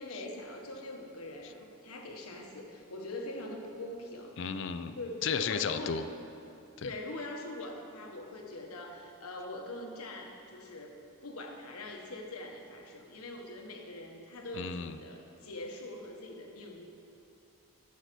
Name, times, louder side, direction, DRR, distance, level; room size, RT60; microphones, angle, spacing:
voice 1, 0.0-4.4 4.9-6.0 6.8-16.8, left 1 dB, 90° left, 2 dB, 1.2 m, -43 dB
voice 2, 4.4-6.1 6.8-6.9 14.6-15.0, left 6 dB, 55° left, 10 dB, 0.4 m, -34 dB
8.1 x 6.2 x 6.8 m, 2.8 s
head